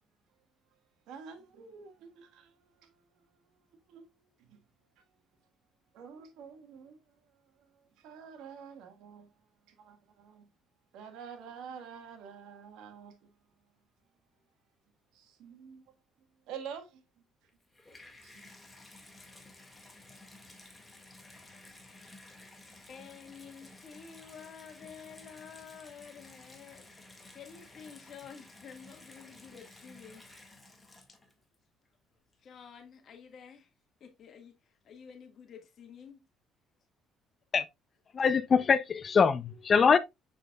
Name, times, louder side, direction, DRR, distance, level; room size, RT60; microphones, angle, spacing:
voice 1, 1.1-4.6 5.0-5.1 5.9-10.5 10.9-13.4 15.1-15.9 16.5-17.2 18.2-18.5, right 7 dB, 80° right, 1.5 m, -49 dB
Water tap faucet / Bathtub (filling or washing), 17.5-31.6 32.3-32.4, left 2 dB, 15° left, 1.8 m, -54 dB
voice 2, 22.9-30.2 32.4-33.7 34.0-36.2, left 7 dB, 55° left, 1.7 m, -50 dB
voice 3, 38.1-40.0, left 6 dB, 40° left, 0.5 m, -23 dB
7.0 x 6.1 x 2.3 m
cardioid pair, 105°, 0 cm